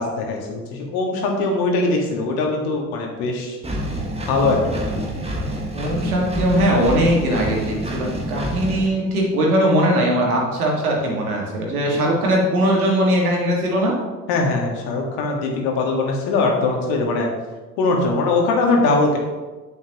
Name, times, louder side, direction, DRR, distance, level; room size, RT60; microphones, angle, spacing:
voice 1, 0.0-3.6 4.3-5.0 14.3-17.3 17.8-19.2, left 3 dB, 55° left, 1 dB, 1.8 m, -21 dB
Engine, 3.6-8.9, right 1 dB, 15° right, 1.5 m, -27 dB
voice 2, 5.7-13.9, equal, 75° right, -1 dB, 1.9 m, -20 dB
8.6 x 7.8 x 3.0 m, 1.2 s
figure-of-eight pair, 65°, 44 cm